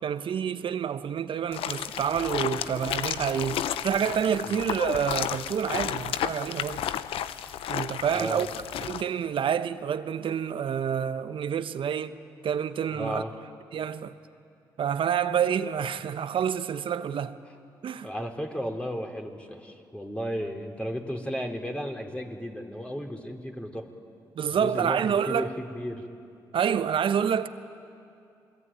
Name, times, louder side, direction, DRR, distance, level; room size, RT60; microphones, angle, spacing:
voice 1, 0.0-6.8 7.7-8.5 8.8-12.1 12.4-13.2 13.7-14.1 14.8-17.4 17.8-18.1 24.4-25.5 26.5-27.5, right 8 dB, 65° right, 1.2 m, -28 dB
sound 1, 1.5-9.0, left 10 dB, 75° left, 0.8 m, -32 dB
voice 2, 8.1-8.5 12.9-13.3 18.0-23.9 24.5-26.0, equal, 10° left, 4.1 m, -34 dB
28.0 x 20.5 x 9.2 m
hypercardioid pair, 45°, 9 cm